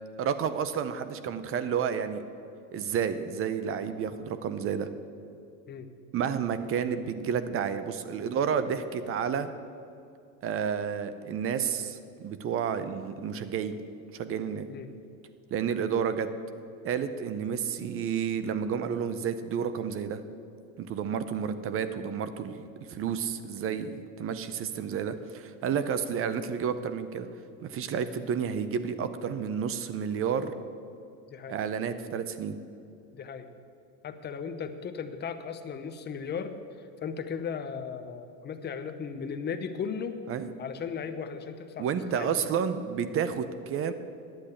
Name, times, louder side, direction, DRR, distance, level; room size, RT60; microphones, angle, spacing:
voice 1, 0.2-2.2 2.7-4.9 6.1-9.5 10.4-13.7 14.1-14.7 15.5-16.3 16.8-20.2 20.8-22.6 22.9-27.3 27.6-30.5 31.5-32.6 40.3-40.5 41.8-43.9, right 7 dB, 30° right, 12 dB, 0.7 m, -30 dB
voice 2, 33.1-33.5 34.0-40.2 40.6-42.4, left 6 dB, 20° left, 9 dB, 0.8 m, -36 dB
10.5 x 8.4 x 8.5 m, 2.5 s
supercardioid pair, 125°, 47 cm